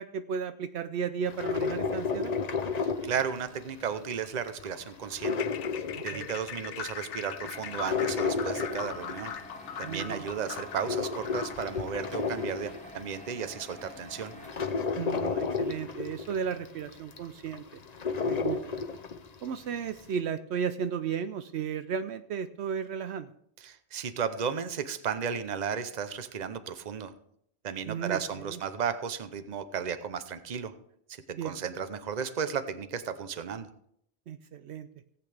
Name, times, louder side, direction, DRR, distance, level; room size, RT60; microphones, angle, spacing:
voice 1, 0.0-2.4 6.1-6.3 9.8-10.2 15.0-17.8 18.3-18.8 19.4-23.3 27.9-28.2 28.5-28.6 31.3-31.6 34.3-34.9, right 7 dB, 75° right, 11 dB, 0.8 m, -34 dB
sound 1, 1.3-3.9 4.2-6.6 7.0-9.6 10.1-13.1 13.7-13.8 14.2-19.4 19.7-19.8, left 5 dB, 40° left, 0.8 m, -32 dB
voice 2, 2.8-5.4 6.0-9.3 9.8-14.3 23.6-27.1 27.6-30.7 31.4-33.7, right 7 dB, 40° right, 11 dB, 0.8 m, -34 dB
sound 2, 5.3-11.8, left 8 dB, 85° left, 1.0 m, -40 dB
sound 3, 7.5-14.6, left 1 dB, 5° left, 1.2 m, -48 dB
17.5 x 8.6 x 3.4 m, 0.71 s
omnidirectional pair, 1.2 m